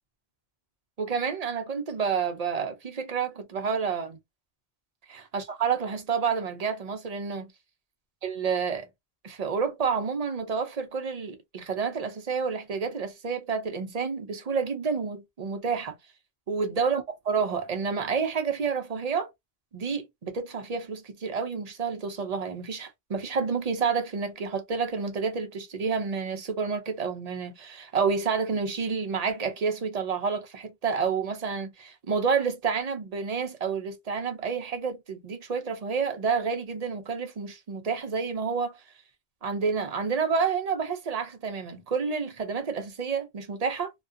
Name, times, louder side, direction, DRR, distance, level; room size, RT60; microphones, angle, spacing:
voice 1, 1.0-4.2 5.3-7.5 8.2-8.9 9.2-16.0 16.5-19.3 19.7-38.8 39.4-43.9, right 5 dB, 50° right, 0.5 m, -29 dB
2.3 x 2.2 x 2.5 m
omnidirectional pair, 1.1 m